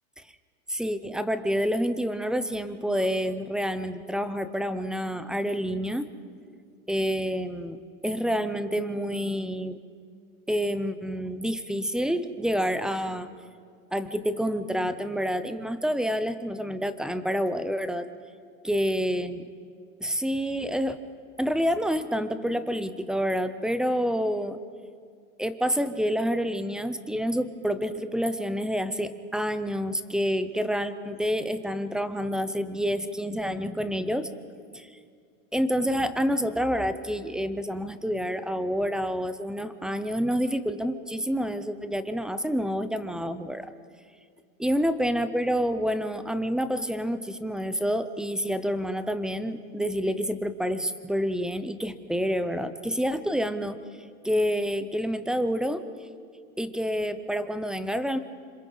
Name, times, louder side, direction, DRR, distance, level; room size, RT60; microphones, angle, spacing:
voice 1, 0.7-6.1 6.9-7.8 8.0-9.8 10.5-13.3 13.9-18.1 18.6-19.4 20.0-21.0 21.4-24.6 25.4-34.3 34.7-34.9 35.5-43.7 44.6-53.8 54.2-55.8 56.6-58.2, equal, ahead, 11 dB, 0.5 m, -28 dB
26.5 x 26.0 x 3.9 m, 2.1 s
hypercardioid pair, 130°, 44 cm